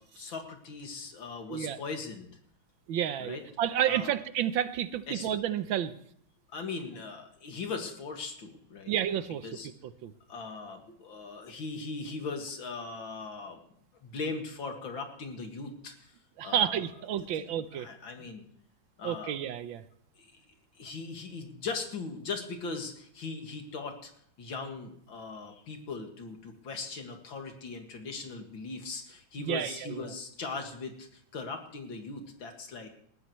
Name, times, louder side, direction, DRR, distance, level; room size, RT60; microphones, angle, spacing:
voice 1, 0.0-2.3 3.2-3.4 3.9-4.1 5.1-5.3 6.5-8.9 9.4-9.7 10.3-13.6 14.0-16.1 16.4-16.8 17.4-17.5 17.7-18.5 19.0-19.4 20.2-20.3 20.8-24.1 24.4-32.9, left 4 dB, 75° left, 4 dB, 2.7 m, -39 dB
voice 2, 2.9-5.9 8.9-9.5 10.0-10.1 16.4-17.9 19.0-19.8 29.4-30.1, right 10 dB, 75° right, 12 dB, 1.5 m, -30 dB
20.0 x 14.5 x 3.1 m, 0.66 s
omnidirectional pair, 2.2 m